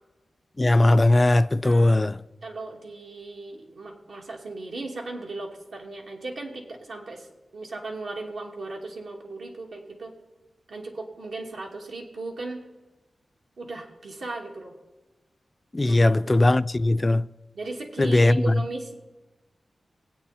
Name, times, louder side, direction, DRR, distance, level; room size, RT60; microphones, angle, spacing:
voice 1, 0.6-2.2 15.7-17.2 18.0-18.4, left 2 dB, 25° left, 0.3 m, -19 dB
voice 2, 1.6-2.1 2.4-7.3 7.5-10.1 10.7-12.6 13.6-14.7 15.8-16.5 17.5-18.9, right 2 dB, 80° right, 2.5 m, -37 dB
21.5 x 8.6 x 4.3 m
wide cardioid pair, 100°, 0 cm